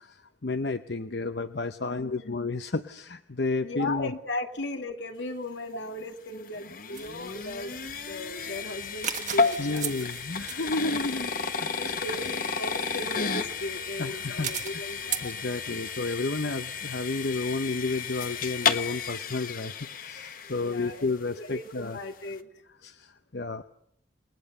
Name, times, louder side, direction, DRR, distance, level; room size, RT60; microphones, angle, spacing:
voice 1, 0.0-4.1 9.6-11.3 11.6-12.2 14.0-14.9 15.2-22.0 22.8-23.6, left 3 dB, 65° left, 9 dB, 0.9 m, -32 dB
voice 2, 1.8-2.3 3.6-7.7 8.0-9.9 10.8-11.0 11.8-15.4 20.6-21.1 21.4-22.5, left 2 dB, 80° left, 5 dB, 2.4 m, -37 dB
sound 1, 5.9-21.1, left 5 dB, 50° left, 1.4 m, -32 dB
sound 2, 6.9-15.3, right 9 dB, 40° right, 1.4 m, -40 dB
28.5 x 20.5 x 6.8 m, 0.71 s
head